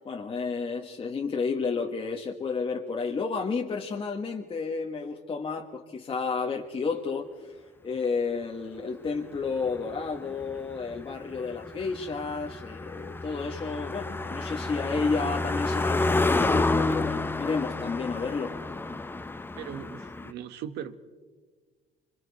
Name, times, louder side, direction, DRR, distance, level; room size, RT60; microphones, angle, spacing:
voice 1, 0.0-7.3 7.8-18.5, left 4 dB, 30° left, 1.5 m, -31 dB
Car passing by, 9.1-20.3, left 2 dB, 10° left, 0.7 m, -30 dB
voice 2, 19.6-21.0, right 9 dB, 80° right, 1.3 m, -39 dB
27.0 x 24.5 x 4.1 m
cardioid pair, 110°, 17 cm